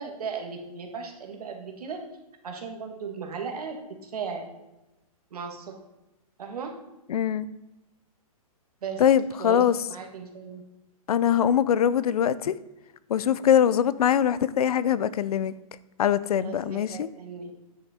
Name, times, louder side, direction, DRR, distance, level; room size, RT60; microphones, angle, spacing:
voice 1, 0.0-2.0 2.4-4.5 5.3-5.7 6.4-6.7 8.8-9.0 9.4-10.6 16.4-17.5, right 5 dB, 85° right, 1.9 m, -36 dB
voice 2, 7.1-7.5 9.0-9.8 11.1-12.5 13.1-15.5 16.0-17.1, left 9 dB, 80° left, 0.5 m, -22 dB
9.6 x 6.4 x 4.3 m
hypercardioid pair, 175°, 19 cm